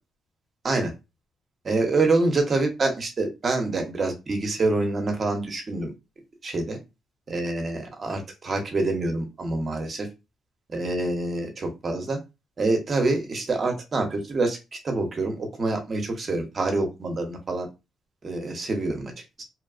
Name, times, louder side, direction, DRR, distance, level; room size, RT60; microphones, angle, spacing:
voice 1, 1.6-5.9 6.4-6.8 7.3-10.1 10.7-12.2 12.6-14.6 14.8-17.7 18.2-19.1 19.4-19.5, right 2 dB, 40° right, 4 dB, 0.8 m, -26 dB
3.0 x 2.2 x 2.4 m, 0.25 s
cardioid pair, 90°, 0 cm